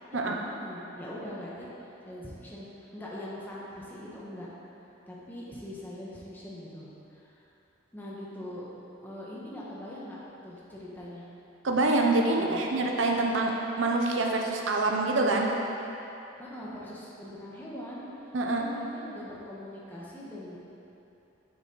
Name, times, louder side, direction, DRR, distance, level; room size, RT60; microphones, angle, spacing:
voice 1, 0.1-4.5 5.1-7.3 7.9-8.7 9.0-10.2 10.4-11.3 12.4-12.7 16.4-20.6, left 1 dB, 10° left, -7 dB, 1.2 m, -42 dB
voice 2, 11.6-15.5 18.3-18.6, right 2 dB, 65° right, 0 dB, 0.7 m, -26 dB
8.1 x 6.1 x 3.9 m, 2.9 s
head